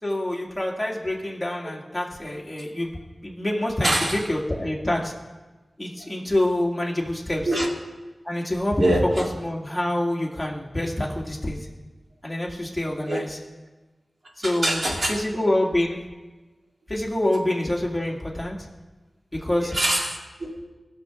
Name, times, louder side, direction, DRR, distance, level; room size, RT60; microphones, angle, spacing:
voice 1, 0.0-2.9 3.2-5.1 5.8-7.5 8.2-11.6 12.2-13.4 14.4-14.8 15.1-16.0 16.9-18.6 19.4-19.7, left 1 dB, 10° left, -2 dB, 2.2 m, -26 dB
voice 2, 3.8-4.2 7.5-7.7 8.8-9.3 13.1-13.2 14.4-15.4 19.6-20.6, right 1 dB, 55° right, -1 dB, 2.2 m, -24 dB
21.0 x 7.0 x 3.7 m, 1.2 s
wide cardioid pair, 85°, 0 cm